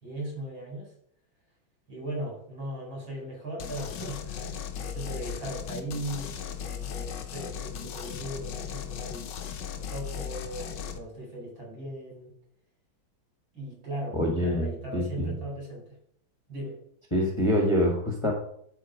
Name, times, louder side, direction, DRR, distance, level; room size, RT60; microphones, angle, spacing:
voice 1, 0.0-0.9 1.9-9.3 9.8-12.3 13.5-16.0 16.5-16.8, right 1 dB, 75° right, -2 dB, 5.0 m, -38 dB
sound 1, 3.6-11.0, left 8 dB, 70° left, 1.4 m, -37 dB
voice 2, 14.1-15.3 17.1-18.3, equal, 15° left, -1 dB, 1.4 m, -25 dB
11.0 x 4.5 x 5.1 m, 0.68 s
omnidirectional pair, 2.2 m